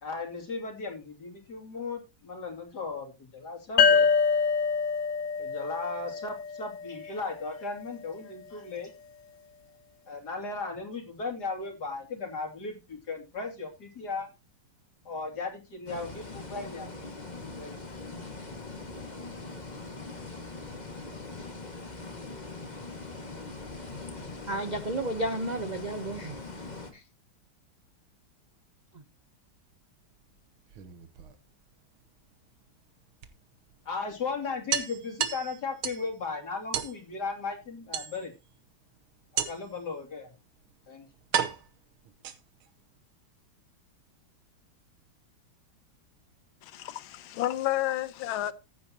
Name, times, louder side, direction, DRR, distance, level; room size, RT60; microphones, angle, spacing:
voice 1, 0.0-4.1 5.4-8.9 10.1-14.3 15.0-16.9 17.6-17.8 33.8-38.3 39.5-40.3 40.9-41.1, left 4 dB, 50° left, 3.3 m, -36 dB
sound 1, 3.8-7.2, left 5 dB, 70° left, 1.5 m, -25 dB
sound 2, 15.9-26.9, left 3 dB, 20° left, 1.8 m, -41 dB
voice 2, 24.5-26.4 26.9-27.0 28.9-29.0, right 1 dB, 45° right, 0.5 m, -32 dB
sound 3, 30.6-31.7 33.2-33.3 33.7-33.8 34.1-34.2 34.7-36.1 36.7-37.0 37.9-38.5 39.4-39.8 40.6-40.7 41.3-42.7, right 9 dB, 85° right, 1.9 m, -32 dB
voice 3, 46.6-48.5, left 14 dB, 90° left, 1.6 m, -31 dB
14.5 x 9.1 x 2.9 m
omnidirectional pair, 2.2 m